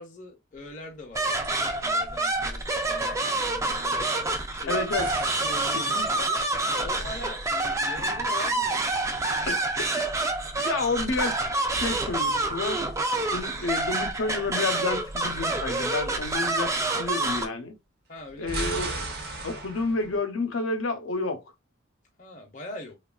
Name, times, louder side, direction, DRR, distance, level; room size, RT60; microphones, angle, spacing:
voice 1, 0.0-4.1 4.4-4.9 5.2-5.9 6.2-6.4 6.7-8.8 18.1-18.6 22.2-23.0, left 1 dB, 40° left, 0.6 m, -42 dB
sound 1, 0.6-1.2 1.4-1.6 5.0-6.7 11.2-13.7 18.2-20.2, right 2 dB, 50° right, 0.7 m, -38 dB
sound 2, 1.1-17.5, right 2 dB, 15° right, 0.3 m, -27 dB
voice 2, 4.7-5.1 5.7-6.3 9.5-9.6 10.6-11.3 11.8-12.8 13.3-17.8 18.4-19.1 19.4-21.4, left 3 dB, 80° left, 0.7 m, -30 dB
3.1 x 2.3 x 2.2 m
head